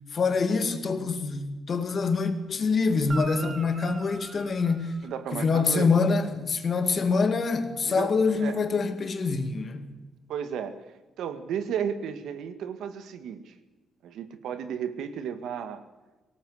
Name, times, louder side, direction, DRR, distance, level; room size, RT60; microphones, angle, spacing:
voice 1, 0.1-4.9 5.3-9.9, left 4 dB, 35° left, 2.3 m, -25 dB
Guitar, 3.0-5.6 9.5-9.6, right 4 dB, 30° right, 2.3 m, -42 dB
voice 2, 5.0-5.9 7.9-8.1 8.4-8.6 10.3-10.8 11.2-13.5 14.0-15.8, right 8 dB, 80° right, 2.1 m, -33 dB
24.5 x 18.5 x 8.1 m
cardioid pair, 160°, 0 cm